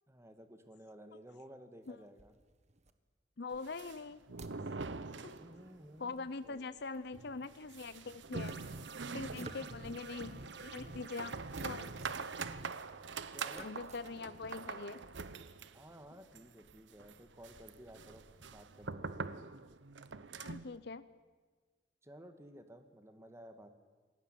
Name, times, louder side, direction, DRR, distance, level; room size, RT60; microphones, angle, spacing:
voice 1, 0.1-2.3 5.3-6.7 9.4-9.7 13.3-13.7 14.1-14.4 15.7-19.3 22.0-23.7, equal, 15° right, 7 dB, 2.0 m, -54 dB
sound 1, 1.8-2.9 3.6-6.6 7.5-10.2 10.8-14.0, right 3 dB, 40° right, 1.5 m, -59 dB
voice 2, 3.4-4.2 5.2-5.3 6.0-8.7 9.1-11.3 11.6-11.9 13.6-15.0 20.4-21.1, left 4 dB, 65° left, 14 dB, 0.8 m, -43 dB
sound 2, 3.5-5.9 6.1-6.2 6.6-6.7 7.1-20.8, right 4 dB, 85° right, 0.9 m, -45 dB
sound 3, 8.3-12.7, right 3 dB, 70° right, 1.5 m, -49 dB
27.0 x 18.5 x 9.3 m, 1.4 s
head